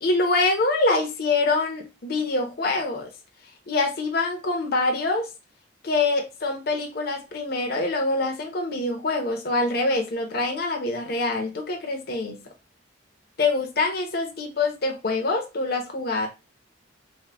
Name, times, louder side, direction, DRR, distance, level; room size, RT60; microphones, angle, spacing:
voice 1, 0.0-3.1 3.7-5.3 5.8-12.4 13.4-16.3, left 3 dB, 50° left, 0.7 m, -25 dB
3.5 x 2.1 x 3.3 m
head